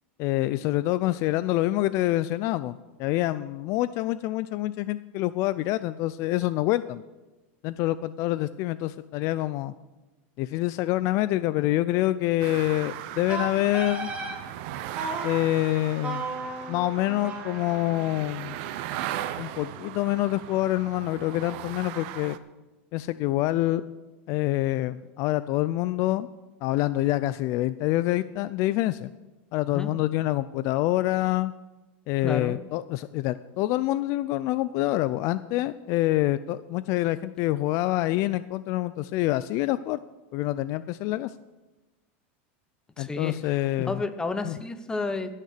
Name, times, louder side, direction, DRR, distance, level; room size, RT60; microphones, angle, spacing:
voice 1, 0.2-7.0 7.6-9.7 10.4-14.1 15.2-16.2 16.7-18.6 19.4-22.4 22.9-23.8 24.3-26.3 26.6-29.1 29.5-31.5 32.1-40.0 40.3-41.3 43.0-44.0 44.4-44.6, left 16 dB, 50° left, 15 dB, 0.4 m, -26 dB
sound 1, 12.4-22.4, right 12 dB, 60° right, 0.8 m, -38 dB
Wind instrument woodwind instrument, 13.3-14.4 15.0-15.4 16.0-19.0, right 3 dB, 20° right, 2.2 m, -35 dB
voice 2, 32.2-32.6 43.0-43.4 43.8-45.3, left 3 dB, 10° left, 10 dB, 0.8 m, -31 dB
16.0 x 6.6 x 6.6 m, 1.1 s
supercardioid pair, 135°, 7 cm